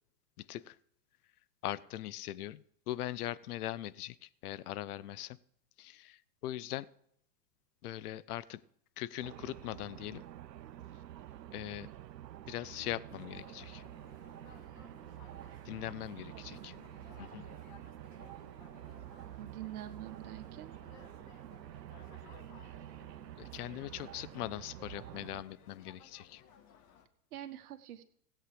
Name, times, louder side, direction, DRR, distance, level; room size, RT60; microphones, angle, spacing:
voice 1, 0.4-0.8 1.6-5.4 5.8-6.9 7.8-8.6 9.0-10.2 11.5-11.9 12.5-13.8 15.7-16.7 17.2-17.4 23.4-26.4, left 14 dB, 65° left, 19 dB, 0.8 m, -41 dB
sound 1, 9.2-25.4, right 12 dB, 90° right, 0.7 m, -49 dB
sound 2, 13.1-27.1, left 7 dB, 35° left, 1.7 m, -60 dB
voice 2, 16.3-16.7 19.4-20.8 27.3-28.0, right 12 dB, 60° right, 7 dB, 1.6 m, -46 dB
17.0 x 8.1 x 5.0 m, 0.70 s
hypercardioid pair, 115°, 49 cm